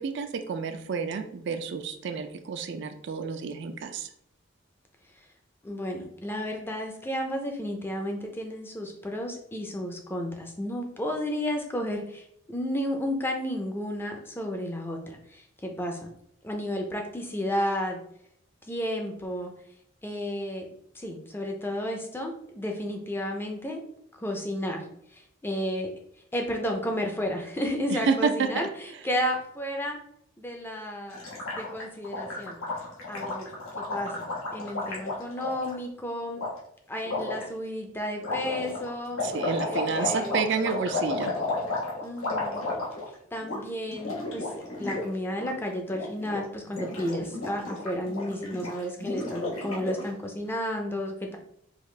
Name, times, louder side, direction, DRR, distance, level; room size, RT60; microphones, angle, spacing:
voice 1, 0.0-4.1 27.9-28.7 39.2-41.3, right 5 dB, 55° right, 7 dB, 0.4 m, -29 dB
voice 2, 5.6-16.1 16.4-18.0 18.7-19.5 20.0-20.7 20.9-23.8 24.2-24.9 25.1-25.9 26.3-30.0 30.4-32.6 33.1-36.4 36.9-39.2 39.7-40.4 42.0-42.8 43.3-51.4, equal, 10° left, 3 dB, 0.4 m, -32 dB
Gurgling, 31.1-35.7 36.4-36.5 37.0-37.4 38.2-43.1 43.4-43.6 43.9-45.0 45.3-45.5 45.9-46.4 46.7-50.1, left 2 dB, 85° left, 1.3 m, -33 dB
4.9 x 2.4 x 3.2 m, 0.70 s
head